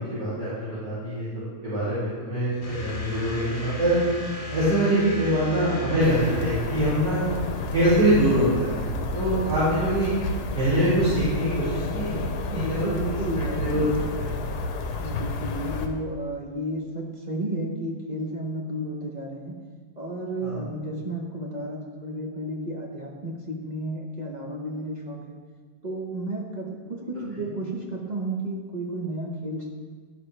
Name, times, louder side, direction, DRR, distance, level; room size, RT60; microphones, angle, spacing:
voice 1, 0.1-1.2 1.6-4.0 4.5-7.2 7.7-10.1 10.5-12.2 12.5-13.8 14.2-14.5 20.4-20.6, right 1 dB, 85° right, -14 dB, 3.3 m, -24 dB
sound 1, 2.6-7.3, left 4 dB, 25° left, 0.9 m, -36 dB
sound 2, 6.0-15.9, left 2 dB, 75° left, 1.2 m, -31 dB
voice 2, 12.5-13.6 15.0-19.6 20.0-25.4 25.8-29.7, right 1 dB, 35° right, -1 dB, 0.7 m, -32 dB
11.0 x 5.1 x 3.3 m, 1.5 s
omnidirectional pair, 1.8 m